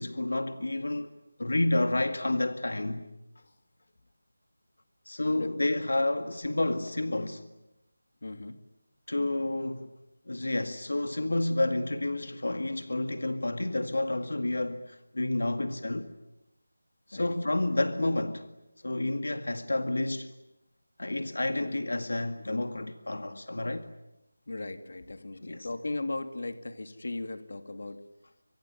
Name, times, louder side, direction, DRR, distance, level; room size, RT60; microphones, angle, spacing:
voice 1, 0.0-3.1 5.1-7.4 9.1-9.9 10.3-16.1 17.1-18.5 18.8-20.3 21.0-23.9 25.4-25.7, left 2 dB, 85° left, 2.0 m, -30 dB
voice 2, 5.3-5.7 8.2-8.6 17.1-17.3 24.5-28.0, left 2 dB, 65° left, 2.5 m, -37 dB
25.0 x 25.0 x 9.4 m
figure-of-eight pair, 175°, 0 cm